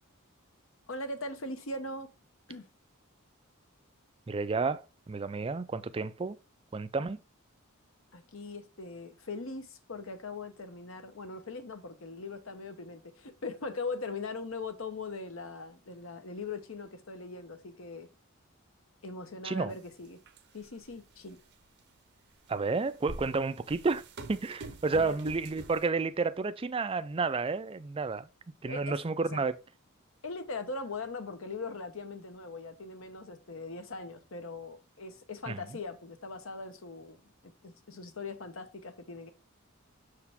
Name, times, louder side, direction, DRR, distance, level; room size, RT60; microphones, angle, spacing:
voice 1, 0.9-2.1 2.5-2.7 8.1-18.1 19.0-20.2 20.5-21.4 24.9-25.2 28.6-29.0 29.3-29.4 30.2-37.2 37.6-39.3, left 3 dB, 65° left, 1.0 m, -40 dB
voice 2, 4.3-6.4 6.7-7.2 19.4-19.7 22.5-24.0 24.3-28.3 28.6-29.5 35.5-35.6, right 4 dB, 25° right, 0.4 m, -31 dB
sound 1, 19.7-19.8 20.3-20.8 21.5-21.6 22.6-25.9, right 2 dB, 50° right, 0.7 m, -45 dB
6.6 x 4.8 x 3.5 m
head